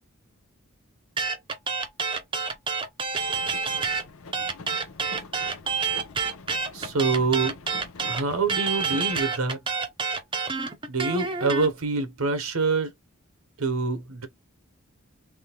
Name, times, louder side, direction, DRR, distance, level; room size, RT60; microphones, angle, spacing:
sound 1, 1.2-4.0 4.3-11.7, right 5 dB, 25° right, 0.6 m, -28 dB
sound 2, 3.2-9.1, left 4 dB, 75° left, 0.7 m, -45 dB
voice 1, 6.7-7.6 8.1-9.8 10.9-12.9 13.6-14.3, right 4 dB, 85° right, 0.9 m, -26 dB
3.5 x 3.2 x 2.9 m
head